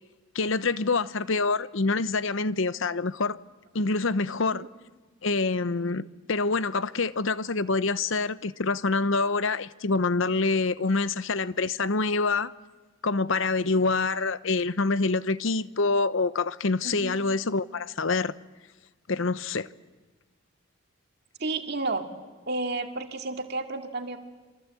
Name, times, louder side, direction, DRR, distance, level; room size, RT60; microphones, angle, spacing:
voice 1, 0.3-3.4 3.7-4.6 5.2-12.5 13.0-18.3 19.1-19.7, left 3 dB, 65° left, 0.8 m, -26 dB
voice 2, 16.8-17.2 21.4-22.1 22.5-24.2, right 3 dB, 50° right, 2.2 m, -31 dB
28.0 x 25.0 x 8.4 m
head